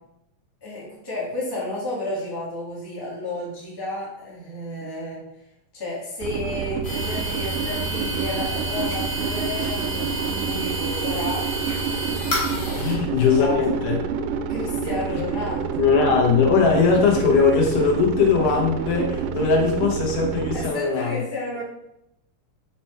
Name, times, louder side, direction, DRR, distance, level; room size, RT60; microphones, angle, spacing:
voice 1, 0.6-5.2 5.7-11.4 12.6-12.8 13.3-13.6 14.5-15.8 20.5-21.6, left 1 dB, 10° left, -6 dB, 1.5 m, -32 dB
sound 1, 6.2-20.7, right 7 dB, 90° right, 2.1 m, -28 dB
sound 2, 6.8-12.9, equal, 60° left, 0.6 m, -30 dB
voice 2, 12.7-14.0 15.8-21.2, left 5 dB, 85° left, 1 dB, 2.8 m, -20 dB
6.1 x 4.4 x 4.5 m, 0.82 s
omnidirectional pair, 3.6 m